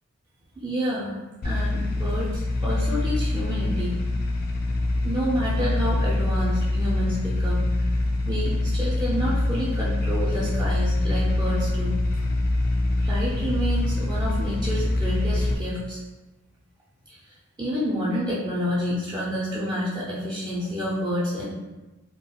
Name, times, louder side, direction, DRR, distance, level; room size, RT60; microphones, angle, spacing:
voice 1, 0.6-1.1 1.4-4.0 5.0-7.6 8.3-12.0 13.0-16.0 17.1-17.2 17.6-21.4, equal, 20° right, -8 dB, 0.5 m, -29 dB
sound 1, 1.4-15.5, left 2 dB, 50° left, 0.3 m, -24 dB
3.5 x 2.2 x 2.3 m, 1.1 s
head